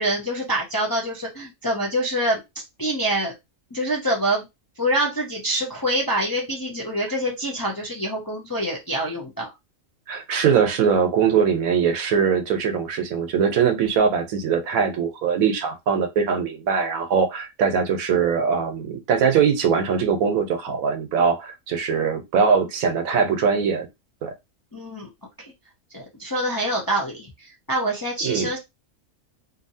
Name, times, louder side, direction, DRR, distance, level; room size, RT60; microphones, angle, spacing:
voice 1, 0.0-2.4 2.8-3.3 3.7-4.4 4.8-9.5 24.7-25.1 25.4-25.5 25.9-28.6, right 1 dB, 30° left, 0.4 m, -25 dB
voice 2, 10.1-23.9 24.2-24.3 28.2-28.5, right 6 dB, 85° right, 1.1 m, -21 dB
2.6 x 2.6 x 2.6 m
omnidirectional pair, 1.4 m